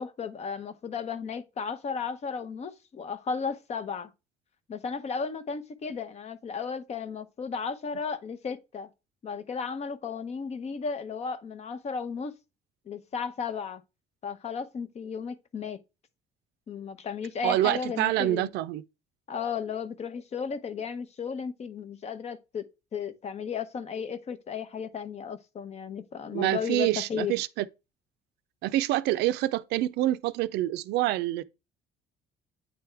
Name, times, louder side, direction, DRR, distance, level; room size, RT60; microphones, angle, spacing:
voice 1, 0.0-4.1 4.7-8.9 9.2-12.3 12.9-13.8 14.2-15.8 16.7-18.5 19.3-27.3, left 6 dB, 40° left, 0.7 m, -34 dB
voice 2, 17.4-18.8 26.3-27.7 28.6-31.4, right 15 dB, 85° right, 0.4 m, -26 dB
8.9 x 3.4 x 3.3 m
cardioid pair, 110°, 17 cm